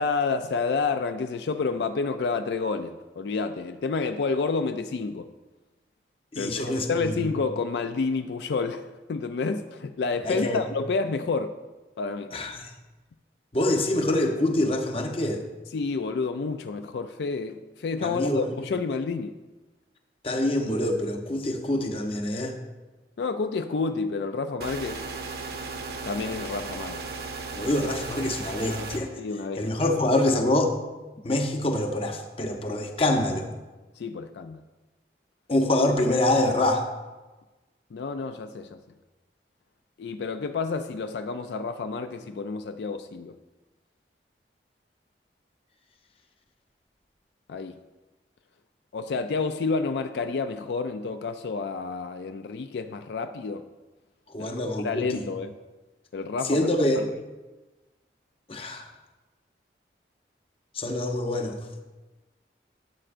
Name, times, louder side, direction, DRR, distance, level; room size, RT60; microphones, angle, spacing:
voice 1, 0.0-5.3 6.4-11.6 12.0-12.3 15.7-19.3 23.2-25.0 26.0-27.1 28.7-28.9 29.2-29.7 34.0-34.6 37.9-38.8 40.0-43.4 47.5-47.8 48.9-53.6 54.4-55.5 56.1-56.7 56.9-57.1, left 4 dB, 75° left, 9 dB, 0.4 m, -29 dB
voice 2, 6.3-7.1 10.2-10.6 12.3-12.6 13.5-15.4 18.0-18.4 20.2-22.5 27.5-29.1 29.6-30.7 31.2-33.5 35.5-36.9 54.3-55.2 56.5-57.0 58.5-58.9 60.7-61.6, left 1 dB, 30° left, 4 dB, 0.8 m, -25 dB
sound 1, 24.6-29.0, right 4 dB, 65° right, 0.9 m, -36 dB
13.0 x 7.7 x 2.5 m, 1.2 s
head